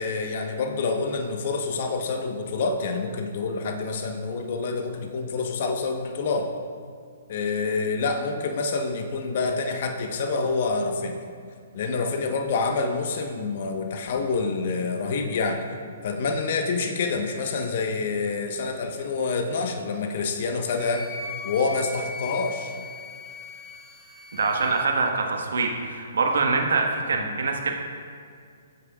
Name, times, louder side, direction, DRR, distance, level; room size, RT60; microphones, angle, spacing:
voice 1, 0.0-6.5 7.3-11.2 11.7-15.6 16.0-21.1 21.4-22.7 27.1-27.3, left 4 dB, 55° left, 3 dB, 1.2 m, -27 dB
Wind instrument woodwind instrument, 20.7-24.9, left 3 dB, 10° right, 2.9 m, -39 dB
voice 2, 24.3-27.7, right 4 dB, 75° right, 2 dB, 1.4 m, -24 dB
19.0 x 8.3 x 2.5 m, 2.2 s
hypercardioid pair, 130°, 0 cm